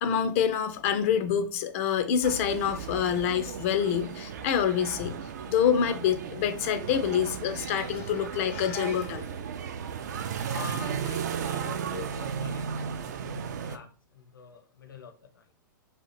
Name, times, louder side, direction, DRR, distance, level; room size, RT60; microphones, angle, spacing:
voice 1, 0.0-9.3, left 8 dB, 40° left, 0.3 m, -27 dB
sound 1, 2.2-13.8, right 7 dB, 55° right, 0.4 m, -35 dB
voice 2, 10.5-13.9 14.1-15.4, left 6 dB, 75° left, 0.7 m, -45 dB
2.8 x 2.4 x 4.0 m
figure-of-eight pair, 100°, 11 cm